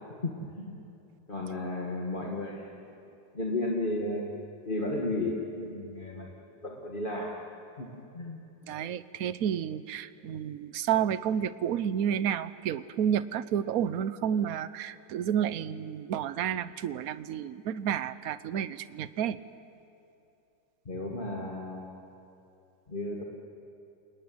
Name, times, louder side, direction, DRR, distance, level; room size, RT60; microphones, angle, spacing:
voice 1, 0.2-0.8 1.3-2.8 3.3-4.2 4.7-7.3 7.8-7.9 8.1-8.4 20.9-22.0 22.9-23.2, left 2 dB, 25° left, -2 dB, 2.1 m, -33 dB
voice 2, 8.7-19.4, right 9 dB, 60° right, 15 dB, 1.1 m, -30 dB
29.5 x 18.5 x 9.6 m, 2.7 s
omnidirectional pair, 2.0 m